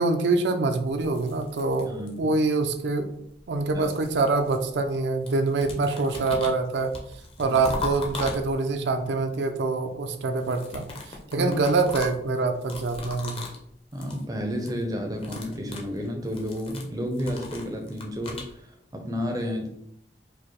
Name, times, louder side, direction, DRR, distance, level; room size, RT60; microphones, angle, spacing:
voice 1, 0.0-3.1 3.5-6.9 7.4-13.5, right 3 dB, 80° right, 6 dB, 0.4 m, -25 dB
sound 1, 0.9-2.4 3.4-5.0 5.2-8.9 10.3-13.6 13.9-14.2 14.5-14.8 15.1-18.5, left 3 dB, 30° left, 0.6 m, -39 dB
voice 2, 1.9-2.3 3.7-3.9 7.4-7.6 11.4-11.5 13.9-19.7, equal, 20° right, 3 dB, 0.5 m, -31 dB
4.9 x 2.1 x 2.9 m, 0.72 s
head